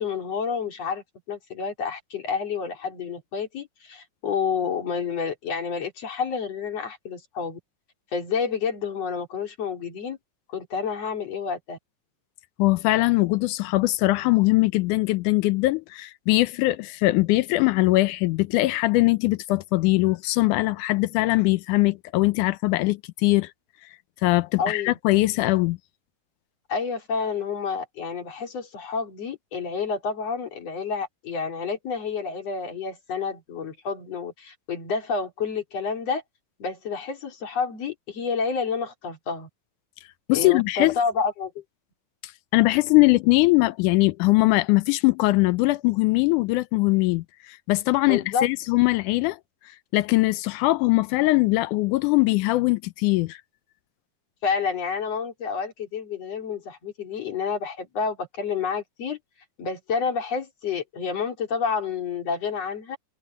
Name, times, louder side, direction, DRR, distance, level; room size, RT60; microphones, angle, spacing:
voice 1, 0.0-7.6 8.1-10.2 10.5-11.8 24.6-25.0 26.7-36.2 36.6-39.5 40.3-41.6 48.0-48.5 54.4-59.2 59.6-63.0, left 5 dB, 50° left, 4.3 m, -29 dB
voice 2, 12.6-23.5 24.2-25.8 40.3-41.0 42.2-49.4 49.9-53.4, left 20 dB, 80° left, 2.0 m, -21 dB
omnidirectional pair, 3.8 m